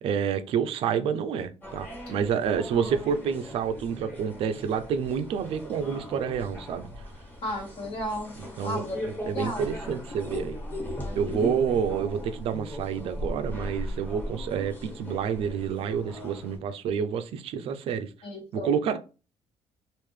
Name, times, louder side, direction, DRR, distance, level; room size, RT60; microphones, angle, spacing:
voice 1, 0.0-6.9 8.4-10.5 11.2-18.1 18.5-19.0, right 7 dB, 55° right, 0.4 m, -29 dB
sound 1, 1.6-16.6, left 1 dB, 15° left, 1.3 m, -38 dB
voice 2, 7.4-8.3 8.6-9.0 9.3-9.6 10.9-11.2 18.2-18.7, left 1 dB, 55° left, 1.5 m, -33 dB
3.6 x 2.5 x 3.1 m
cardioid pair, 175°, 11 cm